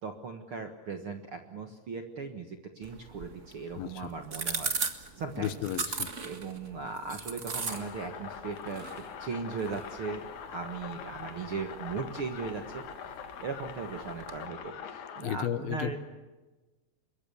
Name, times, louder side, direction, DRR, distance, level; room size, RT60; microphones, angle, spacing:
voice 1, 0.0-5.5 6.2-16.0, right 5 dB, 55° right, 6 dB, 1.6 m, -38 dB
sound 1, 2.8-14.5, right 4 dB, 70° right, 0.7 m, -40 dB
voice 2, 3.8-4.1 5.4-6.1 15.2-16.0, left 11 dB, 75° left, 14 dB, 2.9 m, -33 dB
sound 2, 7.7-15.3, left 7 dB, 55° left, 2.7 m, -43 dB
25.5 x 22.5 x 7.0 m, 1.2 s
omnidirectional pair, 4.5 m